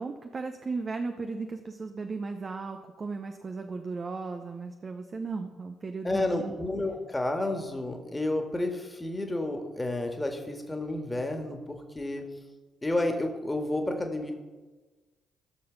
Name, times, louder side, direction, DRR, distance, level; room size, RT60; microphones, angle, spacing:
voice 1, 0.0-6.6, right 4 dB, 35° right, 6 dB, 0.8 m, -36 dB
voice 2, 6.0-12.3 12.8-14.3, left 2 dB, 15° left, 4 dB, 1.8 m, -31 dB
16.0 x 6.9 x 4.0 m, 1.3 s
figure-of-eight pair, 45°, 0 cm